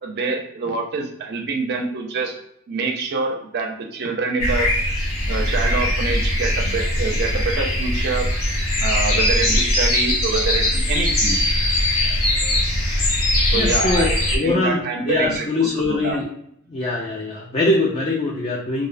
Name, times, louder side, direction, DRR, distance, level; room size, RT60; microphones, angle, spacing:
voice 1, 0.0-2.3 2.7-4.7 5.3-8.3 8.8-11.4 13.5-14.1 14.4-15.5 15.9-16.2, right 4 dB, 45° right, 2 dB, 0.4 m, -25 dB
sound 1, 4.4-14.4, left 1 dB, 70° left, 0.7 m, -20 dB
voice 2, 13.5-14.1 14.3-16.3 16.7-18.9, left 2 dB, 25° left, -3 dB, 0.3 m, -22 dB
2.5 x 2.0 x 2.5 m, 0.73 s
head